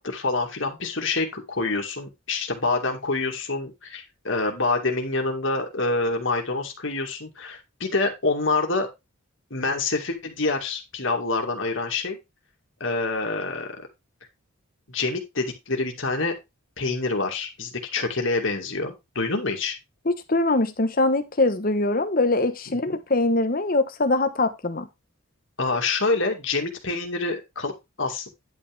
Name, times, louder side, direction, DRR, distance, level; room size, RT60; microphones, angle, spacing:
voice 1, 0.0-8.9 9.5-12.2 12.8-13.7 14.9-16.3 16.8-19.8 22.9-23.0 25.6-27.7 28.0-28.3, left 3 dB, 65° left, 2.2 m, -26 dB
voice 2, 20.3-24.9, left 2 dB, 45° left, 1.1 m, -22 dB
10.5 x 6.1 x 3.5 m
head